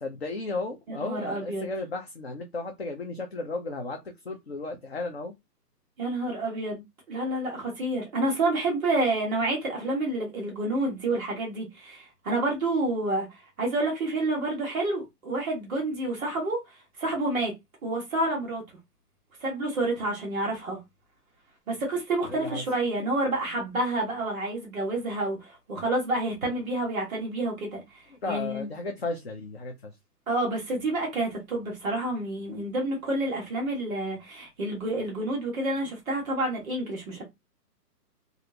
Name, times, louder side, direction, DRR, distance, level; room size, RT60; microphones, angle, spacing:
voice 1, 0.0-5.3 22.3-22.6 28.2-29.9, left 3 dB, 40° left, 0.5 m, -34 dB
voice 2, 0.9-1.7 6.0-17.5 17.8-18.6 19.4-20.8 21.7-28.7 30.3-37.2, right 2 dB, ahead, 0.6 m, -29 dB
3.2 x 2.5 x 2.8 m
hypercardioid pair, 165°, 48 cm